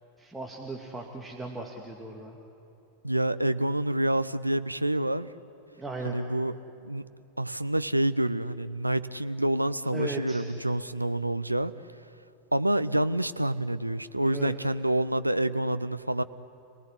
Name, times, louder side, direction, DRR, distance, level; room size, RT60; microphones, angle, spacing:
voice 1, 0.2-2.4 5.8-6.2 9.9-10.5 14.2-14.5 15.9-16.0, right 2 dB, 5° right, 0 dB, 2.2 m, -37 dB
voice 2, 3.0-5.3 6.0-6.5 6.8-7.0 7.4-11.7 12.5-16.2, right 1 dB, 85° right, 12 dB, 0.7 m, -27 dB
30.0 x 19.0 x 10.0 m, 2.7 s
figure-of-eight pair, 90°, 0 cm